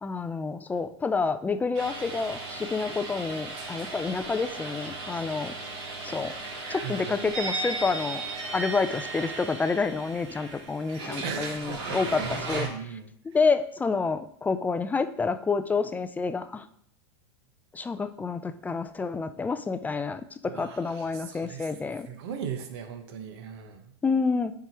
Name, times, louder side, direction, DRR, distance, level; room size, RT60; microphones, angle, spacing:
voice 1, 0.0-5.5 6.0-6.3 6.7-8.2 8.5-12.2 12.5-13.0 13.2-16.7 17.7-22.1 24.0-24.5, left 4 dB, 10° left, 11 dB, 0.3 m, -28 dB
sound 1, 1.7-12.7, right 2 dB, 85° right, 2.3 m, -36 dB
voice 2, 6.8-7.3 11.1-13.1 20.5-21.7 22.1-23.9, right 7 dB, 65° right, 7 dB, 1.1 m, -38 dB
9.0 x 4.8 x 2.9 m, 0.67 s
supercardioid pair, 120°, 14 cm